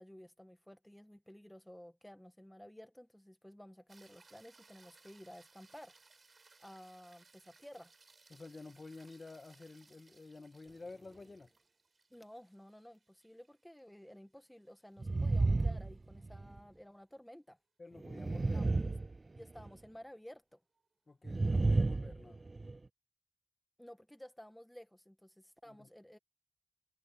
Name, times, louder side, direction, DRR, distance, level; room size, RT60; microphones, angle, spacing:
voice 1, 0.0-6.0 6.6-7.9 12.1-17.6 18.5-19.0 19.3-20.6 23.8-26.2, equal, 10° left, 1.7 m, -54 dB
sound 1, 3.9-16.3 20.8-20.9, right 4 dB, 85° right, 7.6 m, -66 dB
voice 2, 8.3-11.5 17.8-18.7 21.1-22.4 25.7-25.9, left 3 dB, 65° left, 1.7 m, -51 dB
sound 2, 15.0-16.6 18.0-19.7 21.2-22.8, right 3 dB, 55° right, 0.4 m, -32 dB
wide cardioid pair, 80°, 0 cm